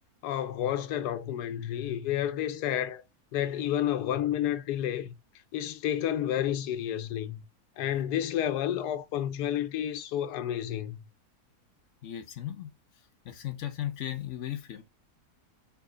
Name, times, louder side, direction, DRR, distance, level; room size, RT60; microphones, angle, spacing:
voice 1, 0.2-3.0 3.3-5.1 5.5-7.4 7.8-11.0, left 11 dB, 90° left, 1.2 m, -30 dB
voice 2, 12.0-12.7 13.2-14.8, left 12 dB, 65° left, 0.7 m, -36 dB
3.6 x 3.0 x 4.8 m
omnidirectional pair, 1.7 m